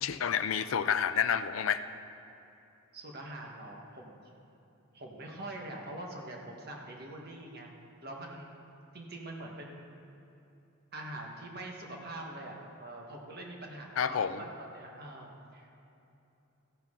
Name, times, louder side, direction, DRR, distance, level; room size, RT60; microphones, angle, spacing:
voice 1, 0.0-1.8 14.0-14.4, left 7 dB, 75° left, 12 dB, 0.4 m, -29 dB
voice 2, 2.9-4.3 4.9-7.7 8.0-8.7 8.9-9.9 10.9-15.7, right 1 dB, 50° right, 0 dB, 1.5 m, -44 dB
15.0 x 10.5 x 3.8 m, 2.9 s
head